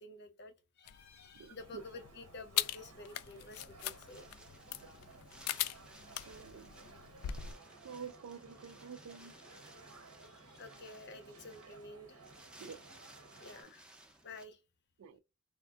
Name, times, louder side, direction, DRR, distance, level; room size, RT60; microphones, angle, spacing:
voice 1, 0.0-4.3 10.2-12.3 13.4-13.9 14.2-14.6, left 2 dB, 50° left, 0.6 m, -51 dB
sound 1, 0.9-7.5, left 12 dB, 85° left, 0.3 m, -41 dB
sound 2, 1.6-13.6, right 3 dB, 90° right, 0.9 m, -57 dB
Wind, 3.2-14.4, right 1 dB, 5° right, 0.5 m, -59 dB
voice 2, 6.3-6.7 7.8-9.3 12.6-12.8 15.0-15.2, right 6 dB, 70° right, 0.3 m, -48 dB
3.3 x 2.4 x 2.3 m
head